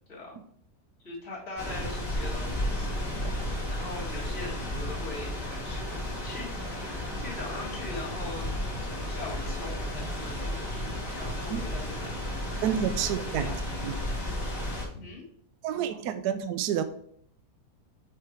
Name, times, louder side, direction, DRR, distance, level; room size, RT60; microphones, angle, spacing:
voice 1, 1.0-3.1 3.7-8.5 8.8-12.7 13.0-13.5 14.9-15.2 15.6-16.0, left 3 dB, 50° left, -5 dB, 3.4 m, -42 dB
sound 1, 1.6-14.8, left 1 dB, 30° left, 3.3 m, -33 dB
voice 2, 12.6-13.5 13.8-13.9 15.6-16.8, right 9 dB, 80° right, 9 dB, 1.1 m, -29 dB
8.2 x 3.4 x 4.7 m, 0.63 s
omnidirectional pair, 1.7 m